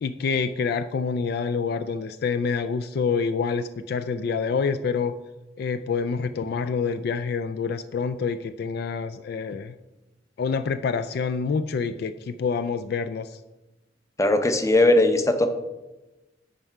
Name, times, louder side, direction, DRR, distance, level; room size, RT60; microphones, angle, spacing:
voice 1, 0.0-5.1 5.6-9.7 10.4-13.4, left 5 dB, 55° left, 10 dB, 0.3 m, -27 dB
voice 2, 14.2-15.5, left 2 dB, 15° left, 8 dB, 0.6 m, -19 dB
9.5 x 5.4 x 4.6 m, 1.1 s
head